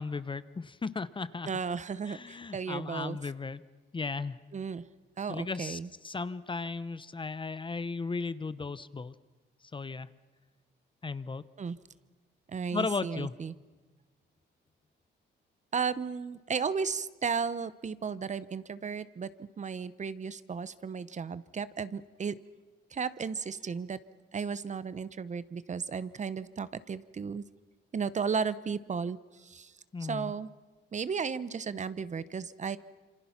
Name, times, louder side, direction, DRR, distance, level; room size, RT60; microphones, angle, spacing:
voice 1, 0.0-1.5 2.1-3.6 3.9-4.4 5.3-9.1 9.7-10.1 11.0-11.4 12.7-13.3 29.9-30.3, left 4 dB, 25° left, 15 dB, 0.8 m, -35 dB
voice 2, 1.5-3.2 4.5-4.8 5.2-5.9 11.6-11.8 12.5-13.5 15.7-22.4 22.9-24.0 24.3-27.4 27.9-29.7 30.0-30.5 30.9-32.8, right 6 dB, 35° right, 16 dB, 0.8 m, -34 dB
27.5 x 25.0 x 5.8 m, 1.3 s
cardioid pair, 90°, 20 cm